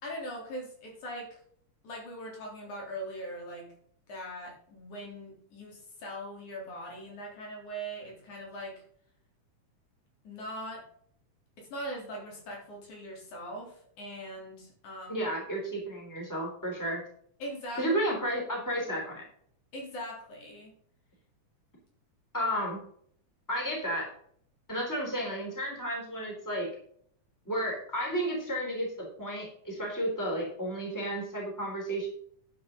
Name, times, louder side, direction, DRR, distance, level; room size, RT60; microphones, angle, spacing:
voice 1, 0.0-1.3 1.8-3.7 4.1-8.8 10.2-10.8 11.6-15.2 17.4-17.8 19.7-20.7, equal, 75° left, -1 dB, 4.9 m, -41 dB
voice 2, 15.1-17.0 17.7-19.2 22.3-22.8 23.5-24.1 24.7-26.7 27.4-32.1, equal, 5° left, -2 dB, 3.3 m, -32 dB
11.5 x 7.9 x 3.9 m, 0.63 s
omnidirectional pair, 3.5 m